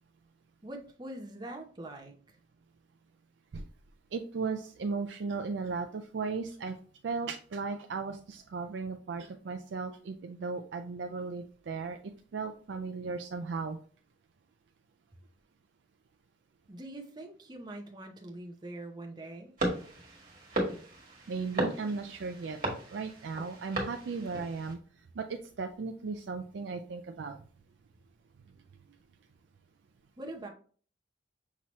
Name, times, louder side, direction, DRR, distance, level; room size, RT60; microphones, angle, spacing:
voice 1, 0.6-2.4 16.7-19.5 30.2-30.5, right 1 dB, 20° right, 3 dB, 0.6 m, -43 dB
voice 2, 4.1-6.8 7.0-12.0 12.3-13.8 21.3-22.6 22.9-24.8 25.2-27.4, right 4 dB, 70° right, 6 dB, 0.4 m, -36 dB
sound 1, 19.6-24.7, right 1 dB, 45° right, 1.5 m, -36 dB
5.9 x 2.8 x 3.0 m, 0.43 s
head